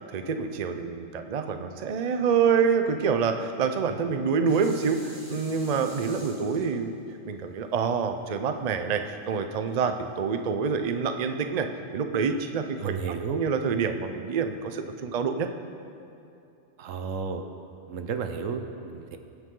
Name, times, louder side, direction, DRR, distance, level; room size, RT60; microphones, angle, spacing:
voice 1, 0.1-7.0 7.2-11.7 11.9-15.5, right 6 dB, 45° right, 7 dB, 0.6 m, -27 dB
Dishes pots and pans, 3.9-9.1 9.7-9.8, equal, 15° right, 1.8 m, -47 dB
voice 2, 12.8-13.4 16.8-17.4 17.9-19.2, right 5 dB, 85° right, 7 dB, 1.2 m, -32 dB
19.5 x 8.0 x 3.8 m, 2.7 s
omnidirectional pair, 1.3 m